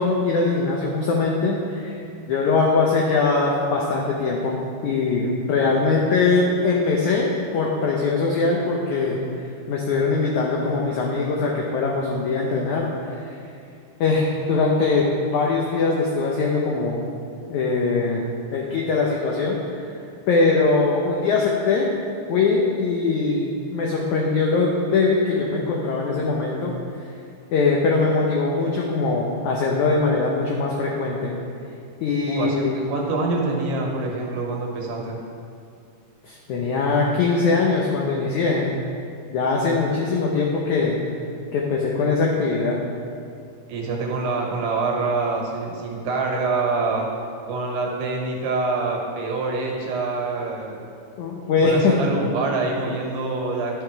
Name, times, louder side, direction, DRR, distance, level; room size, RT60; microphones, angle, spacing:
voice 1, 0.0-2.0 2.3-9.2 9.7-13.3 14.0-17.0 17.5-19.8 20.3-21.9 22.3-26.7 27.5-31.3 32.0-32.8 36.2-38.8 39.3-41.0 41.5-42.8 51.2-51.9, left 3 dB, 85° left, -2 dB, 1.7 m, -22 dB
voice 2, 32.3-35.2 43.7-47.1 47.5-50.8 51.6-53.8, right 3 dB, 90° right, -1 dB, 3.4 m, -25 dB
11.0 x 7.0 x 4.6 m, 2.4 s
omnidirectional pair, 4.6 m